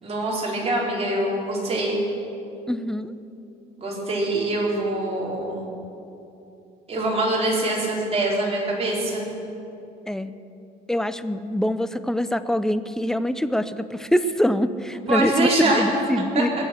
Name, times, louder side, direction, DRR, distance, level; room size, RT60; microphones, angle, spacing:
voice 1, 0.0-2.0 3.8-5.7 6.9-9.3 15.1-15.9 16.3-16.6, right 2 dB, 35° right, -4 dB, 4.5 m, -24 dB
voice 2, 2.7-3.1 10.1-10.3 10.9-16.6, equal, 5° left, 13 dB, 0.6 m, -24 dB
20.5 x 7.2 x 8.0 m, 2.7 s
cardioid pair, 110°, 17 cm